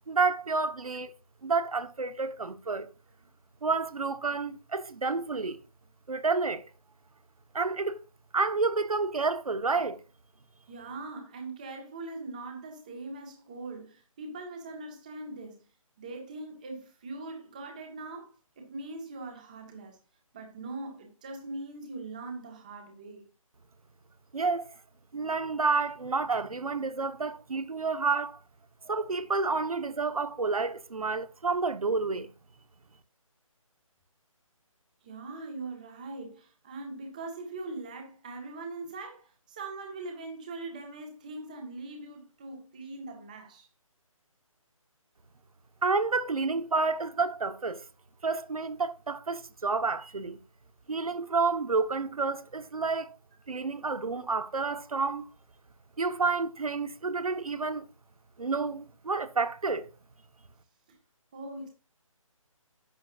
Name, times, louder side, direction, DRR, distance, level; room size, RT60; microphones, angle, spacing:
voice 1, 0.1-1.1 1.4-2.9 3.6-5.6 6.1-6.6 7.5-8.0 8.3-10.0 24.3-24.7 25.1-28.4 28.8-32.3 45.8-47.8 48.2-50.4 50.9-53.1 53.5-55.3 56.0-57.8 58.4-59.9, right 4 dB, 85° right, 1.4 m, -29 dB
voice 2, 10.7-15.6 16.0-20.0 20.3-23.2 35.0-43.7 60.9-61.0 61.3-61.7, right 2 dB, 15° right, 1.6 m, -41 dB
11.5 x 8.6 x 2.6 m
hypercardioid pair, 180°, 18 cm